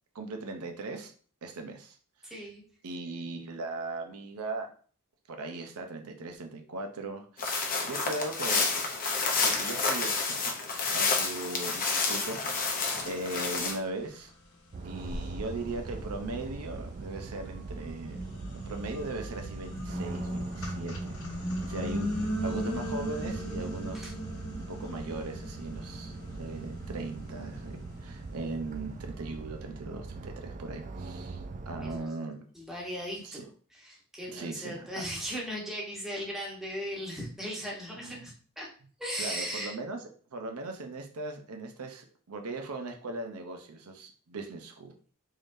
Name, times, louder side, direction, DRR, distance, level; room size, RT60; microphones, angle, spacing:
voice 1, 0.1-1.1 1.4-2.0 2.8-4.7 5.3-8.7 9.4-12.6 13.0-14.3 14.8-18.2 18.7-24.1 24.6-32.4 33.2-33.4 34.3-34.9 38.0-38.3 39.2-40.0 40.3-44.9, right 2 dB, 80° right, 4 dB, 0.6 m, -39 dB
voice 2, 2.2-2.6 24.0-24.1 31.8-32.1 32.5-33.4 33.7-38.7 39.0-39.7, equal, ahead, -4 dB, 1.1 m, -37 dB
sound 1, 7.4-13.8, left 4 dB, 40° left, 0.7 m, -29 dB
sound 2, 14.3-14.4 15.0-17.3 17.8-29.1, equal, 75° left, 0.9 m, -38 dB
sound 3, 14.7-32.0, right 3 dB, 35° right, 0.3 m, -41 dB
3.7 x 3.3 x 2.6 m, 0.43 s
head